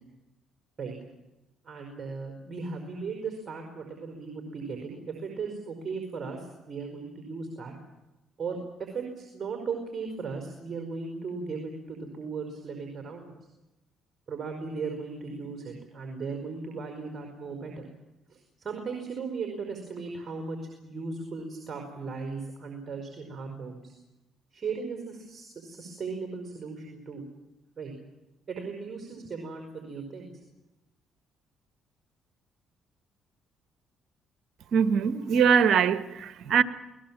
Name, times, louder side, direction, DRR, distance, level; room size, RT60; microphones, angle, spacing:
voice 1, 1.6-7.7 8.4-13.3 14.3-17.9 18.3-20.6 20.8-23.9 24.5-27.2 27.8-27.9 28.5-30.3, right 4 dB, 40° right, 4.9 m, -37 dB
voice 2, 34.7-36.6, right 7 dB, 65° right, 1.3 m, -22 dB
28.0 x 19.5 x 7.4 m
supercardioid pair, 70°, 0 cm